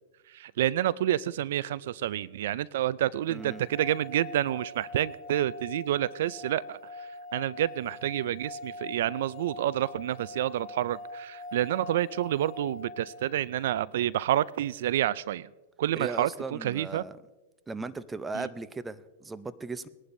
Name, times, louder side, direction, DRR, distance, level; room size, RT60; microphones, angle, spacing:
voice 1, 0.3-15.5 15.8-17.0 18.3-18.5, right 12 dB, 70° right, 21 dB, 0.3 m, -29 dB
voice 2, 3.3-3.6 16.0-17.2 17.7-19.9, right 3 dB, 10° right, 14 dB, 0.6 m, -37 dB
sound 1, 3.4-13.5, left 2 dB, 25° left, 3.0 m, -43 dB
20.5 x 11.0 x 2.6 m, 1.1 s
hypercardioid pair, 125°, 0 cm